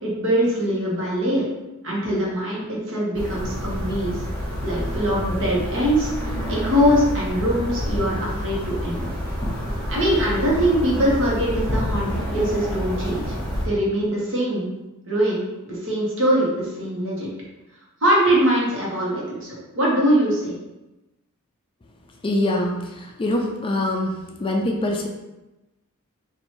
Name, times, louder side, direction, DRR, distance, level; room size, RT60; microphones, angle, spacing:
voice 1, 0.0-1.4 1.8-4.2 4.6-9.1 9.9-13.3 13.6-14.7 15.1-17.3 18.0-20.5, equal, 60° right, -5 dB, 1.1 m, -22 dB
sound 1, 3.1-13.7, equal, 5° left, 0.8 m, -28 dB
voice 2, 22.2-24.1 24.4-25.1, left 1 dB, 25° left, 1 dB, 0.3 m, -24 dB
2.9 x 2.6 x 4.3 m, 1.0 s
head